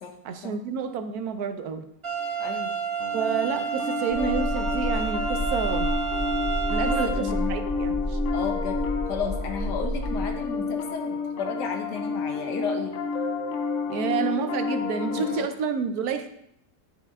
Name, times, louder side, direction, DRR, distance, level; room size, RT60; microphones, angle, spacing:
voice 1, 0.2-1.9 3.1-5.9 6.7-8.2 13.9-16.3, right 6 dB, 70° right, 8 dB, 1.1 m, -29 dB
sound 1, 2.0-7.1, right 6 dB, 35° right, 2.1 m, -30 dB
voice 2, 2.4-2.8 6.8-7.7 8.3-8.8 9.1-13.0 15.2-15.3, left 5 dB, 90° left, 3 dB, 1.7 m, -33 dB
Piano, 3.0-15.5, left 5 dB, 60° left, 0.9 m, -30 dB
sound 2, 4.1-10.6, equal, 10° right, 2.3 m, -31 dB
10.5 x 4.9 x 3.6 m, 0.74 s
omnidirectional pair, 1.8 m